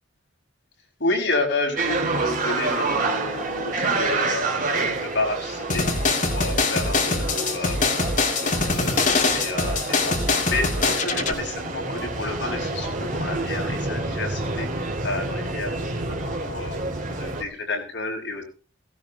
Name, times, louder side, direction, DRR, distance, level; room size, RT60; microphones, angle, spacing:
voice 1, 1.0-5.9 6.2-18.4, left 2 dB, 65° left, 1 dB, 6.2 m, -31 dB
sound 1, 1.8-17.4, right 3 dB, 40° right, 2.5 m, -28 dB
sound 2, 5.7-11.3, left 3 dB, 40° left, 2.5 m, -23 dB
17.5 x 16.5 x 2.9 m, 0.35 s
head